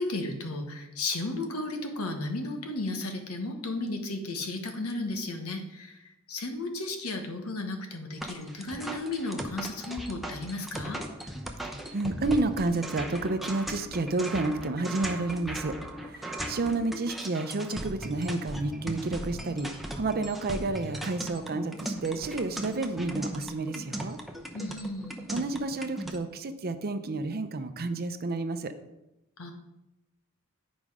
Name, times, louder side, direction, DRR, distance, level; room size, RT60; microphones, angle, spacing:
voice 1, 0.0-11.0 24.5-25.2 29.4-29.5, left 2 dB, 85° left, 4 dB, 1.3 m, -34 dB
sound 1, 8.2-26.2, right 1 dB, ahead, 0.7 m, -38 dB
voice 2, 11.6-24.2 25.3-28.7, right 2 dB, 45° right, 10 dB, 0.6 m, -30 dB
9.2 x 5.1 x 4.9 m, 0.95 s
head